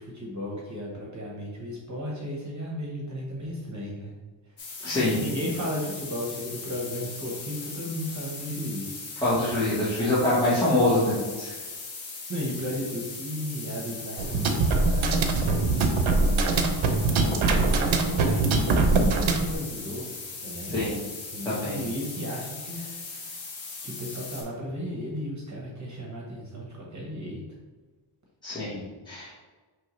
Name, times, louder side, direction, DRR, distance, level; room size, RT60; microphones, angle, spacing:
voice 1, 0.0-4.1 4.9-9.0 10.0-10.3 12.3-16.6 17.0-20.7 21.3-23.4 23.8-27.4, equal, 35° right, -4 dB, 1.1 m, -35 dB
sound 1, 4.6-24.4, left 4 dB, 75° left, 1.2 m, -39 dB
voice 2, 4.8-5.2 9.2-11.5 20.7-21.0 21.4-21.8 28.4-29.4, left 1 dB, 10° left, -10 dB, 1.1 m, -25 dB
sound 2, 14.2-19.6, right 3 dB, 85° right, 0.7 m, -23 dB
5.3 x 3.2 x 3.1 m, 1.3 s
wide cardioid pair, 140°, 46 cm